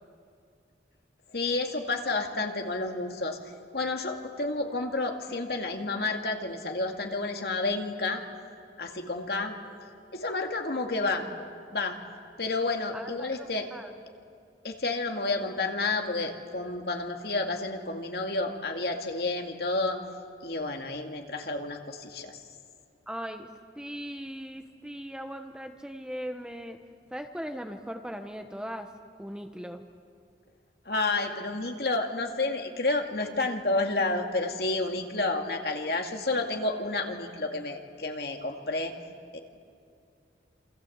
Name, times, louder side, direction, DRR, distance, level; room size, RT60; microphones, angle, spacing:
voice 1, 1.3-3.4 3.7-8.2 8.8-9.5 10.1-11.3 11.7-12.0 12.4-13.7 14.6-20.0 20.4-22.4 30.9-38.9 39.3-39.4, left 2 dB, 60° left, 3 dB, 2.3 m, -30 dB
voice 2, 12.9-13.9 23.1-23.5 23.7-26.8 27.1-28.9 29.2-29.9, equal, 5° right, 5 dB, 1.0 m, -39 dB
28.0 x 26.0 x 8.0 m, 2.4 s
head